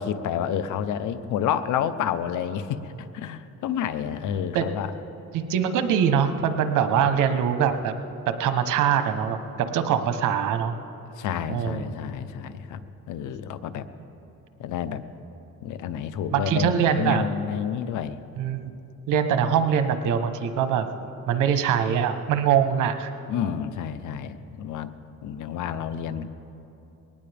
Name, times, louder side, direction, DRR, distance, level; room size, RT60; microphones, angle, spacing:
voice 1, 0.0-4.9 11.2-13.9 14.6-15.0 15.6-18.2 23.3-24.9 25.2-26.3, left 9 dB, 80° left, 12 dB, 0.8 m, -29 dB
voice 2, 5.3-7.9 8.3-10.7 11.5-11.9 16.3-17.3 18.4-18.7 19.1-20.9 21.3-23.1, right 8 dB, 90° right, 9 dB, 1.0 m, -23 dB
21.0 x 18.5 x 3.5 m, 2.9 s
cardioid pair, 90°, 30 cm